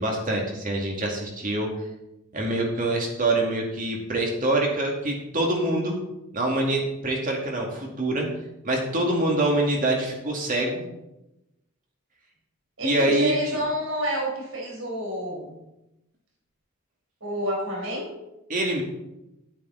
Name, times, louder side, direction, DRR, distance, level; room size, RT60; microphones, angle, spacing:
voice 1, 0.0-1.7 2.3-6.0 6.3-8.3 8.6-10.8 12.8-13.3 18.5-18.8, right 1 dB, 40° right, 0 dB, 2.4 m, -25 dB
voice 2, 12.8-15.6 17.2-18.1, equal, 75° right, -2 dB, 4.5 m, -29 dB
10.5 x 8.9 x 4.1 m, 0.90 s
head